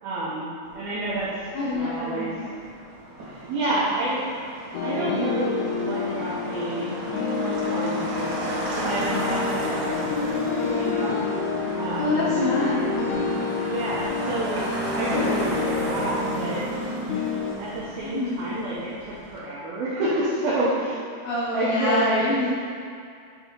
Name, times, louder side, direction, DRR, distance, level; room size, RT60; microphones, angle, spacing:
voice 1, 0.0-1.3 1.7-2.3 3.3-4.2 4.8-6.9 7.4-11.2 11.8-12.2 13.6-14.6 14.9-16.6 17.6-21.0 21.5-22.2, right 1 dB, 80° right, -8 dB, 2.1 m, -29 dB
Motor vehicle (road), 0.6-19.4, right 1 dB, 65° right, 2.1 m, -34 dB
voice 2, 1.5-2.6 10.6-11.1 12.0-13.0 18.0-18.5 21.2-22.5, left 2 dB, 70° left, -8 dB, 2.5 m, -27 dB
sound 1, 4.7-17.5, left 4 dB, 90° left, 3.4 m, -28 dB
9.7 x 3.7 x 5.2 m, 2.3 s
omnidirectional pair, 5.8 m